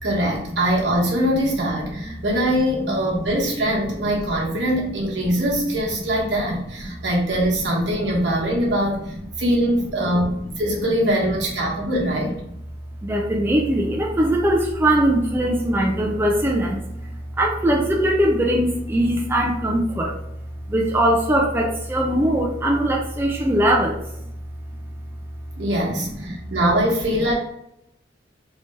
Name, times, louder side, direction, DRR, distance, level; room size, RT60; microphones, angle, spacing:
voice 1, 0.0-12.3 25.6-27.3, equal, 70° right, -3 dB, 1.1 m, -22 dB
voice 2, 13.0-17.0 17.4-20.1 20.7-24.0, right 1 dB, 10° right, -2 dB, 0.4 m, -20 dB
3.2 x 2.7 x 3.3 m, 0.78 s
head